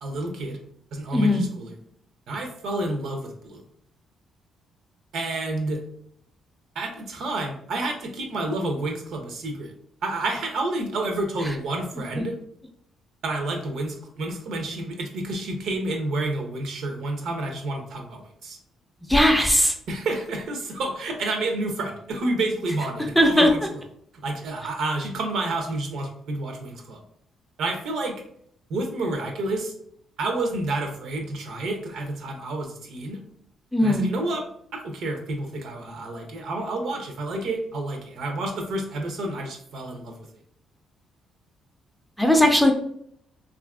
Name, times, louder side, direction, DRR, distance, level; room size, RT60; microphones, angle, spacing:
voice 1, 0.0-0.6 0.9-1.8 2.3-3.6 5.1-5.8 6.7-9.7 10.0-12.4 13.2-18.6 19.9-23.6 24.2-27.0 27.6-28.2 28.7-29.7 30.2-33.2 33.8-34.4 34.7-40.1, right 2 dB, 75° right, 3 dB, 0.6 m, -29 dB
voice 2, 1.1-1.4 19.1-19.7 23.2-23.5 33.7-34.1 42.2-42.7, left 1 dB, ahead, 2 dB, 0.4 m, -18 dB
2.8 x 2.4 x 2.3 m, 0.67 s
cardioid pair, 90°, 0 cm